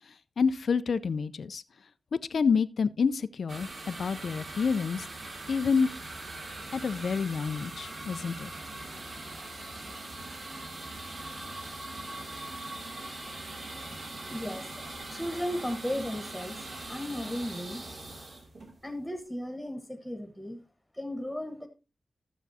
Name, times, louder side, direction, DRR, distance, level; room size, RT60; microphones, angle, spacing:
voice 1, 0.4-1.6 2.3-5.1 5.5-5.9 6.7-8.5, left 5 dB, 75° left, 0.5 m, -28 dB
sound 1, 3.5-19.2, right 2 dB, 60° right, 2.3 m, -41 dB
voice 2, 13.7-14.0 14.3-16.6 16.9-17.8 18.8-20.6 20.9-21.7, equal, ahead, 1.4 m, -36 dB
14.0 x 7.1 x 2.7 m
wide cardioid pair, 135°, 0 cm